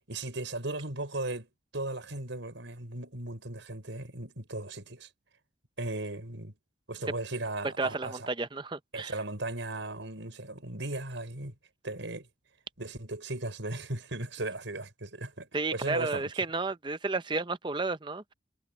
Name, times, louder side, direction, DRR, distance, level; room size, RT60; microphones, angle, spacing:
voice 1, 0.1-5.1 5.8-6.5 6.9-8.3 8.9-11.5 11.8-12.3 12.8-16.3, right 2 dB, 80° right, 4.9 m, -37 dB
voice 2, 7.8-9.1 15.5-18.3, right 3 dB, 25° right, 0.7 m, -32 dB
head